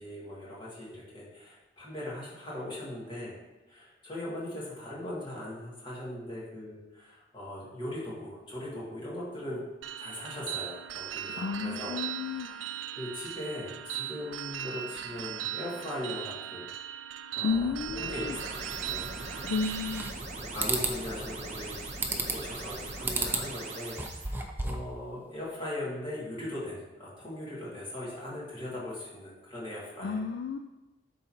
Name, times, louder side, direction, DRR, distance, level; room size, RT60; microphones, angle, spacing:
voice 1, 0.0-3.3 3.7-9.6 10.0-11.9 12.2-16.7 17.3-19.1 20.4-21.8 22.0-30.3, left 1 dB, 30° left, -7 dB, 2.3 m, -39 dB
sound 1, 9.8-20.1, right 11 dB, 80° right, 0.3 m, -39 dB
voice 2, 11.4-12.5 17.4-18.4 19.4-20.1 30.0-30.6, left 5 dB, 70° left, 6 dB, 0.3 m, -32 dB
sound 2, 17.5-24.3, right 2 dB, 40° right, 0.9 m, -40 dB
sound 3, 19.6-20.3 20.6-21.0 22.0-22.5 23.0-23.5 23.9-24.9, right 3 dB, 10° right, 0.5 m, -32 dB
11.0 x 3.9 x 2.9 m, 1.0 s
head